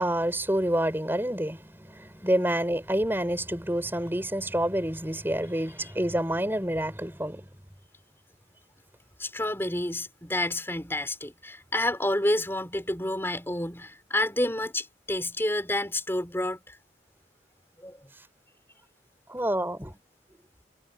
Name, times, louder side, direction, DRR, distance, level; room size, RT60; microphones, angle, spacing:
voice 1, 0.0-7.5 19.3-19.9, right 1 dB, 10° right, 5.1 m, -28 dB
voice 2, 9.2-16.8 17.8-18.1, left 1 dB, 15° left, 4.4 m, -29 dB
head